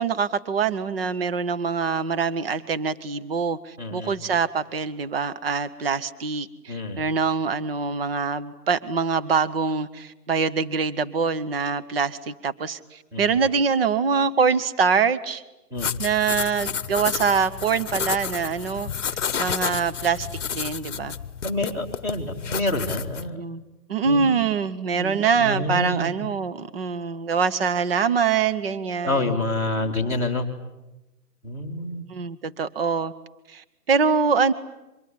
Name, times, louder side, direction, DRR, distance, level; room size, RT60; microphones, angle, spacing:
voice 1, 0.0-15.4 16.0-18.9 19.4-20.3 20.5-21.2 23.3-23.6 23.9-29.3 32.1-33.1 33.5-34.5, right 5 dB, 35° right, 14 dB, 1.0 m, -24 dB
voice 2, 3.8-4.1 6.7-7.0 13.1-13.4 15.7-15.9 21.4-23.4 24.0-24.4 24.9-26.1 29.0-30.5 31.4-32.0, left 2 dB, 5° right, 1 dB, 1.8 m, -28 dB
sound 1, 15.7-23.3, left 7 dB, 45° left, 1.0 m, -31 dB
24.5 x 23.5 x 10.0 m, 0.97 s
hypercardioid pair, 165°, 49 cm